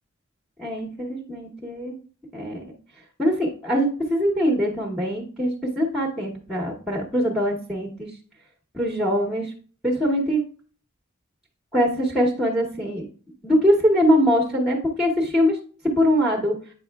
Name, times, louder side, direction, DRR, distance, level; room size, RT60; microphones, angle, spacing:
voice 1, 0.6-2.0 2.3-2.6 3.2-8.1 8.7-9.5 9.8-10.4 11.7-13.1 13.4-15.6 16.0-16.5, equal, ahead, -1 dB, 0.8 m, -22 dB
7.9 x 5.4 x 2.3 m, 0.41 s
head